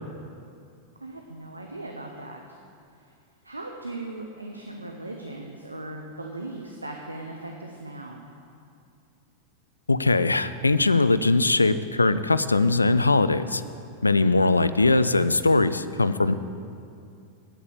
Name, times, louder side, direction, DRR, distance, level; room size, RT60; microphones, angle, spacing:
voice 1, 1.0-2.6 3.4-8.2, right 2 dB, 85° right, 2 dB, 0.7 m, -38 dB
voice 2, 9.9-13.6 14.0-16.4, left 3 dB, 80° left, 14 dB, 0.3 m, -21 dB
8.6 x 8.5 x 7.1 m, 2.5 s
figure-of-eight pair, 90°, 0 cm